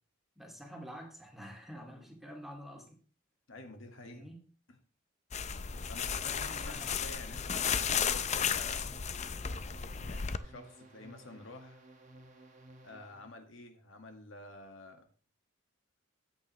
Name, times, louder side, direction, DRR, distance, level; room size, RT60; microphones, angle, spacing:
voice 1, 0.4-3.0 4.0-4.4 6.5-7.0, equal, ahead, 1 dB, 2.3 m, -48 dB
voice 2, 3.5-4.3 4.7-4.8 5.9-8.9 10.0-11.8 12.8-15.1, left 2 dB, 65° left, 5 dB, 1.8 m, -50 dB
sound 1, 5.3-10.4, left 7 dB, 35° left, 0.5 m, -34 dB
sound 2, 5.8-13.3, right 1 dB, 35° right, 1.9 m, -55 dB
13.5 x 9.0 x 3.2 m, 0.41 s
head